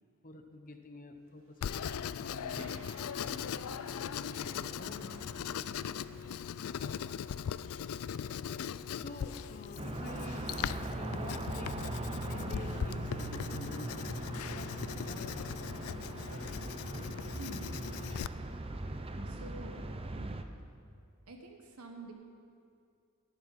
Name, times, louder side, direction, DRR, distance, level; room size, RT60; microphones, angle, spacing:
voice 1, 0.2-5.2 8.9-11.8 12.3-14.1 14.5-15.5, left 2 dB, 40° left, 6 dB, 1.0 m, -48 dB
Writing, 1.6-18.3, left 8 dB, 75° left, 0.4 m, -39 dB
Thunder / Rain, 1.6-19.1, right 2 dB, 60° right, 1.3 m, -56 dB
sound 1, 9.8-20.4, right 2 dB, 25° right, 0.6 m, -40 dB
voice 2, 17.3-17.7 19.1-19.7 20.1-20.4 21.3-22.1, right 2 dB, 85° right, 2 dB, 1.4 m, -47 dB
18.5 x 11.5 x 4.2 m, 2.4 s
head